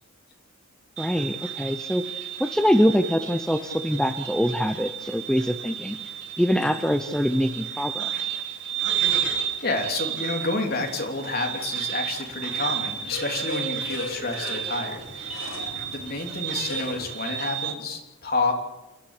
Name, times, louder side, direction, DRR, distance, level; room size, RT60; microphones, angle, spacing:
voice 1, 1.0-6.0 6.4-8.4, equal, 5° left, 7 dB, 0.6 m, -24 dB
sound 1, 1.0-17.7, right 9 dB, 55° right, 3.6 m, -32 dB
sound 2, 5.5-7.1 7.8-7.9 11.7-17.1, left 2 dB, 65° left, 7.9 m, -39 dB
voice 2, 9.3-15.4 15.9-18.5, left 3 dB, 45° left, 2 dB, 3.3 m, -29 dB
29.0 x 11.5 x 8.3 m, 1.0 s
head